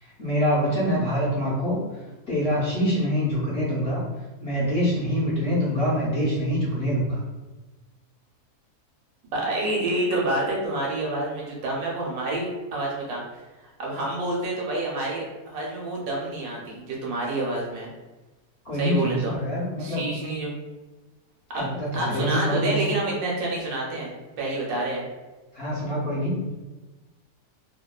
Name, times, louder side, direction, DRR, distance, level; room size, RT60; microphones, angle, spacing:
voice 1, 0.2-1.8 2.3-4.0 4.4-7.2 18.6-20.1 21.5-22.9 25.5-26.4, equal, 55° left, -9 dB, 0.7 m, -25 dB
voice 2, 9.3-13.2 13.8-17.9 18.8-19.3 19.8-20.5 21.5-25.0, right 2 dB, 70° right, -3 dB, 1.1 m, -28 dB
2.8 x 2.1 x 2.2 m, 1.1 s
omnidirectional pair, 1.6 m